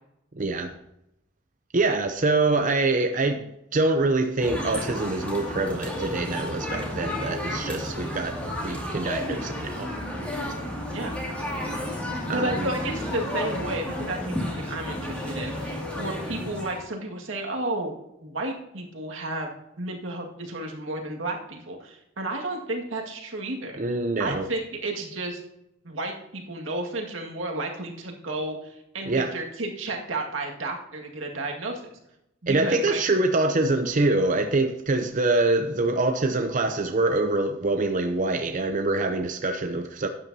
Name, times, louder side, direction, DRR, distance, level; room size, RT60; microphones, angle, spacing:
voice 1, 0.4-0.7 1.7-9.9 10.4-10.6 12.3-12.7 23.8-24.5 29.1-29.3 32.5-40.1, right 2 dB, 40° right, 6 dB, 0.6 m, -25 dB
sound 1, 4.4-16.8, left 1 dB, 5° left, 2.3 m, -32 dB
voice 2, 12.3-17.9 18.2-23.8 24.2-25.4 25.8-32.0 32.4-33.0, right 2 dB, 85° right, 1 dB, 1.9 m, -32 dB
12.0 x 9.0 x 2.8 m, 0.84 s
head